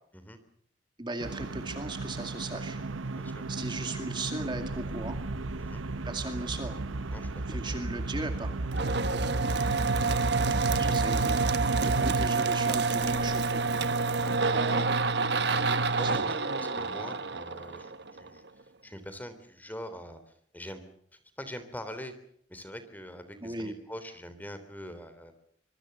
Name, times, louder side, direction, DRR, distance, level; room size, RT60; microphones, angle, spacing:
voice 1, 1.0-2.8 3.5-5.2 6.1-6.8 7.5-8.5 10.8-11.4 11.8-13.6 14.4-14.9 16.0-16.1 23.4-23.7, right 2 dB, 25° right, 6 dB, 2.2 m, -37 dB
sound 1, 1.2-12.3, right 2 dB, 90° right, 0.9 m, -34 dB
voice 2, 3.1-3.4 5.6-5.8 7.1-7.4 9.1-9.2 14.1-14.6 15.5-18.4 18.8-20.2 20.5-20.8 21.4-22.1 22.5-25.3, equal, 10° left, 10 dB, 3.3 m, -43 dB
sound 2, 4.4-14.1, equal, 10° right, 3.3 m, -48 dB
sound 3, 8.7-18.3, right 4 dB, 60° right, 1.3 m, -28 dB
25.5 x 23.5 x 6.9 m, 0.67 s
head